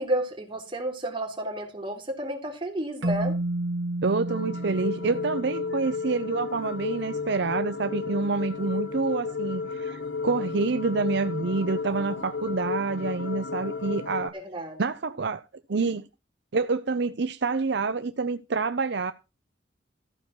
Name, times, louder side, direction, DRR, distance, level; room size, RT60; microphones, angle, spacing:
voice 1, 0.0-3.4 14.3-14.8, right 1 dB, 30° right, 3.4 m, -31 dB
Keyboard (musical), 3.0-6.3, right 1 dB, 90° right, 1.2 m, -31 dB
voice 2, 4.0-14.3 14.8-15.4 15.7-16.0 16.5-19.1, right 4 dB, 65° right, 0.7 m, -27 dB
sound 1, 4.3-14.3, left 5 dB, 70° left, 0.8 m, -33 dB
14.5 x 6.2 x 5.9 m
head